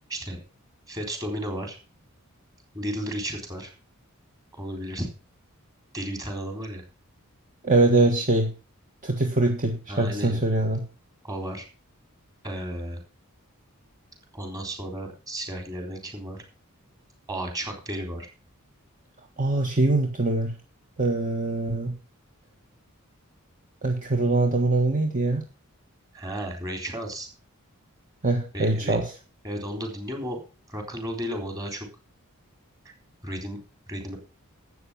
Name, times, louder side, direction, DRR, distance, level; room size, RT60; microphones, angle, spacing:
voice 1, 0.9-1.8 2.7-3.7 4.5-5.1 5.9-6.8 9.9-10.4 11.2-11.7 12.4-13.0 14.3-16.4 17.3-18.3 26.1-27.3 28.5-29.0 29.4-30.4 30.7-31.9 32.9-33.0 33.2-33.6 33.9-34.2, equal, 15° right, 3 dB, 3.7 m, -33 dB
voice 2, 7.6-8.5 9.0-10.8 19.4-20.5 21.0-21.9 23.8-25.4 28.2-29.1, right 2 dB, 40° right, 3 dB, 1.6 m, -23 dB
12.5 x 8.4 x 5.8 m, 0.34 s
head